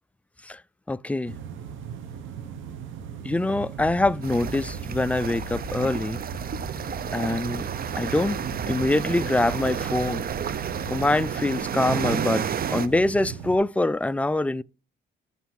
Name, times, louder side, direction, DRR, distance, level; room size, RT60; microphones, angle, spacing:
voice 1, 0.9-1.3 3.2-6.2 7.1-7.7 8.0-8.4 8.7-10.2 10.9-12.4 12.7-14.6, left 2 dB, 5° left, 0.3 m, -24 dB
sound 1, 1.3-13.6, right 8 dB, 80° right, 1.5 m, -38 dB
sound 2, 3.8-11.1, left 1 dB, 15° right, 2.9 m, -42 dB
sound 3, 4.2-12.9, right 8 dB, 50° right, 0.7 m, -31 dB
8.1 x 4.1 x 5.8 m
cardioid pair, 90°, 20 cm